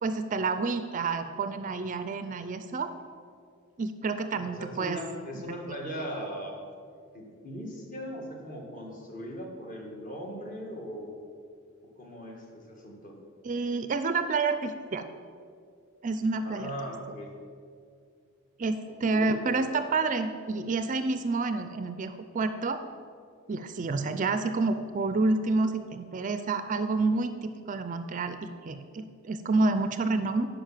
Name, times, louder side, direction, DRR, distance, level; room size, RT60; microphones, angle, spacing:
voice 1, 0.0-2.9 3.8-5.0 5.7-5.8 13.4-15.1 16.0-16.7 18.6-22.8 23.5-28.4 28.7-30.5, right 3 dB, 35° right, 10 dB, 0.4 m, -29 dB
voice 2, 4.4-6.6 7.1-11.2 11.9-13.2 16.4-17.3 19.1-19.6, equal, 35° left, 0 dB, 1.7 m, -39 dB
10.5 x 5.2 x 7.4 m, 2.2 s
head